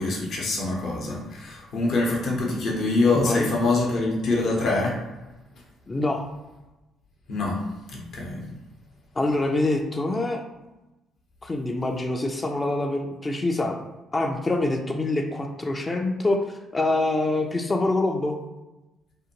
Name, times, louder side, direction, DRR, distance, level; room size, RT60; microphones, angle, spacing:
voice 1, 0.0-4.9 7.3-7.6 7.9-8.4, left 2 dB, 60° left, -2 dB, 0.7 m, -25 dB
voice 2, 3.1-3.5 5.9-6.2 9.2-10.4 11.4-13.8 14.1-16.4 16.7-18.4, left 2 dB, 25° left, 3 dB, 0.3 m, -25 dB
2.6 x 2.2 x 2.8 m, 1.0 s
hypercardioid pair, 50°, 0 cm